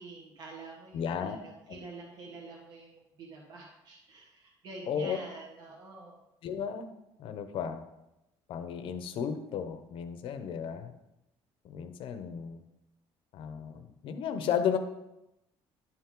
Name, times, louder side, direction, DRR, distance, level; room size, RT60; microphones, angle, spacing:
voice 1, 0.0-6.2, right 3 dB, 45° right, -2 dB, 1.5 m, -47 dB
voice 2, 0.9-1.4 1.7-1.8 4.9-5.2 6.4-6.9 7.2-7.8 8.5-10.9 11.6-12.6 13.3-14.8, left 8 dB, 60° left, 8 dB, 0.8 m, -34 dB
11.0 x 5.7 x 3.8 m, 0.90 s
cardioid pair, 165°, 10 cm